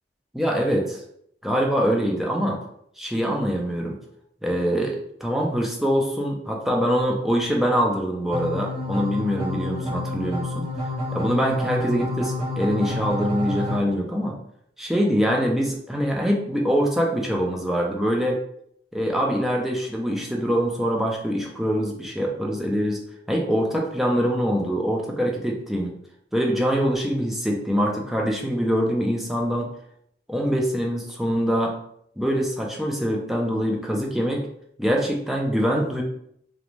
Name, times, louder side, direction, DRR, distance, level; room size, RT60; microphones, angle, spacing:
voice 1, 0.3-1.0 1.4-2.6 3.0-4.0 4.4-10.7 11.1-14.4 14.8-18.4 18.9-23.0 23.3-25.9 26.3-29.7 30.3-31.8 32.2-34.5 34.8-36.0, equal, ahead, -1 dB, 0.4 m, -24 dB
sound 1, 8.3-13.8, left 1 dB, 40° right, 1.1 m, -29 dB
2.5 x 2.1 x 3.0 m, 0.70 s
head